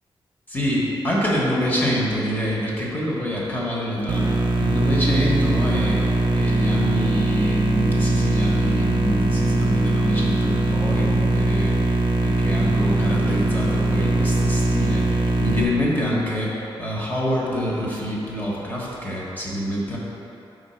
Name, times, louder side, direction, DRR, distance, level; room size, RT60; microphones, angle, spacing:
voice 1, 0.5-20.0, equal, 20° left, -5 dB, 1.1 m, -26 dB
sound 1, 4.1-15.6, right 2 dB, 50° right, 0.6 m, -21 dB
5.2 x 4.4 x 4.4 m, 3.0 s
wide cardioid pair, 125°, 9 cm